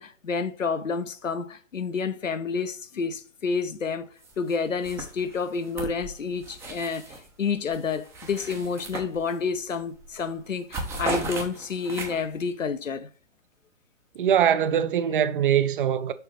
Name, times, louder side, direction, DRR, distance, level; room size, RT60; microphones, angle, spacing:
voice 1, 0.0-4.1 4.4-13.1, left 5 dB, 90° left, 0.8 m, -29 dB
sound 1, 4.2-4.5 4.8-7.3 7.7-9.6 10.0-10.2 10.5-12.4, right 2 dB, 5° right, 0.6 m, -36 dB
voice 2, 14.2-16.1, right 9 dB, 45° right, 0.6 m, -22 dB
6.4 x 4.9 x 3.1 m
hypercardioid pair, 130°, 38 cm